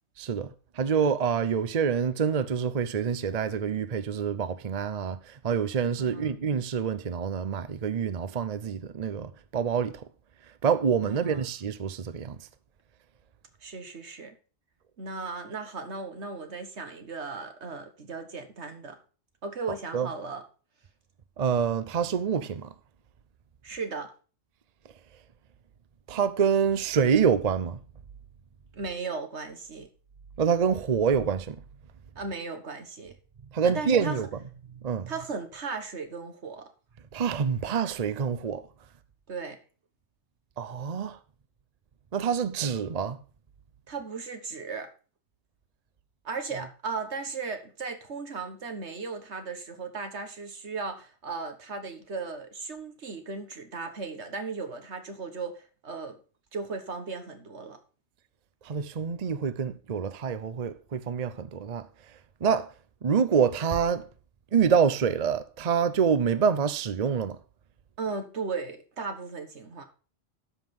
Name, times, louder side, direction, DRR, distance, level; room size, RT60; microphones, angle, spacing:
voice 1, 0.2-10.0 10.6-12.4 19.9-20.1 21.4-22.7 26.1-27.8 30.4-31.6 33.5-34.3 34.8-35.1 37.1-38.7 40.6-41.2 42.1-43.2 58.6-61.9 62.4-62.7 63.0-64.1 64.5-67.4, right 6 dB, 40° right, 0.7 m, -26 dB
voice 2, 6.0-6.4 11.0-11.5 13.6-14.4 15.0-19.0 19.4-20.4 23.6-24.1 28.7-29.9 32.2-33.2 33.6-34.2 35.1-36.7 39.3-39.6 43.9-44.9 46.2-56.2 56.5-57.8 68.0-69.8, right 4 dB, 75° right, 1.8 m, -36 dB
12.5 x 5.6 x 5.9 m
omnidirectional pair, 1.2 m